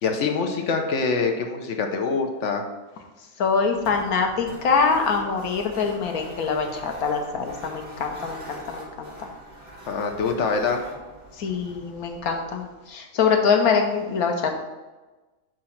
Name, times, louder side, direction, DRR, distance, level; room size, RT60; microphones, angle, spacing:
voice 1, 0.0-2.6 9.9-10.8, left 4 dB, 60° left, 4 dB, 1.0 m, -24 dB
voice 2, 3.4-9.3 11.3-14.6, left 5 dB, 85° left, 3 dB, 1.3 m, -24 dB
sound 1, 3.5-12.9, right 1 dB, 55° right, 2.3 m, -44 dB
6.3 x 2.9 x 5.7 m, 1.2 s
omnidirectional pair, 1.5 m